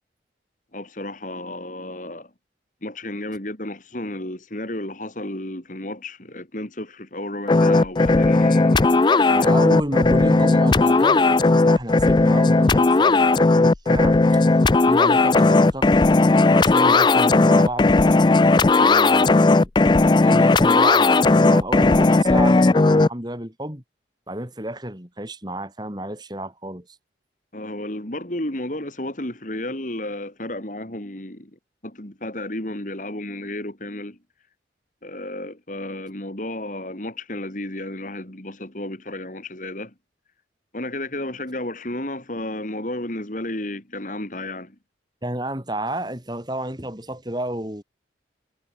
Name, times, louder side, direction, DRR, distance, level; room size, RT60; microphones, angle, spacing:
voice 1, 0.7-2.3 2.8-9.5 27.5-34.2 35.0-39.9 40.7-44.8, left 1 dB, 45° left, 2.9 m, -32 dB
sound 1, 7.5-23.1, left 3 dB, 25° left, 0.4 m, -16 dB
voice 2, 9.3-15.9 16.1-18.0 18.4-19.7 20.2-23.8 24.3-26.9 45.2-47.8, right 1 dB, 25° right, 3.3 m, -31 dB
head